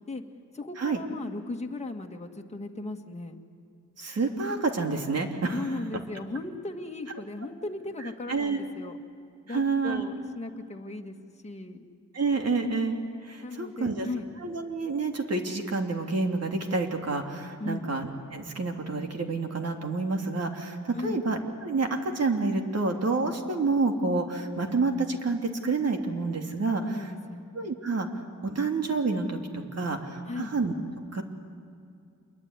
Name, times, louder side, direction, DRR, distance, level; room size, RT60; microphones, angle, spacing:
voice 1, 0.5-3.4 5.5-9.0 9.5-11.2 11.4-11.8 13.4-14.3 17.6-17.9 20.9-21.2 26.8-27.5 30.2-30.5, left 2 dB, 20° left, 1 dB, 2.0 m, -36 dB
voice 2, 4.0-5.7 8.3-8.7 9.5-10.0 12.1-14.1 14.4-26.8 27.5-28.1 28.4-30.7 31.1-31.2, right 3 dB, 50° right, 3 dB, 3.1 m, -28 dB
27.5 x 22.5 x 9.8 m, 2.4 s
wide cardioid pair, 105°, 33 cm